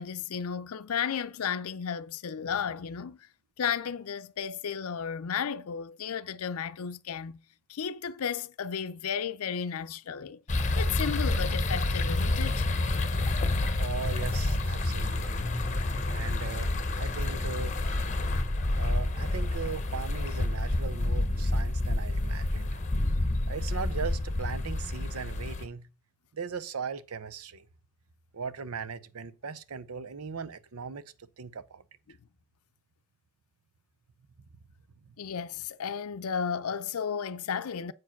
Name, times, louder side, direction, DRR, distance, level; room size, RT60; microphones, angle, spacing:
voice 1, 0.0-3.3 3.6-7.4 7.7-10.4 10.7-12.7 32.1-32.2 35.2-37.9, left 7 dB, 85° left, 0.5 m, -33 dB
sound 1, 10.5-25.6, left 2 dB, 35° left, 0.8 m, -29 dB
voice 2, 13.8-15.5 16.1-17.7 18.8-22.8 23.5-25.9 26.3-27.7 28.3-31.8 35.0-35.1, right 5 dB, 90° right, 0.7 m, -39 dB
7.9 x 4.7 x 5.8 m
head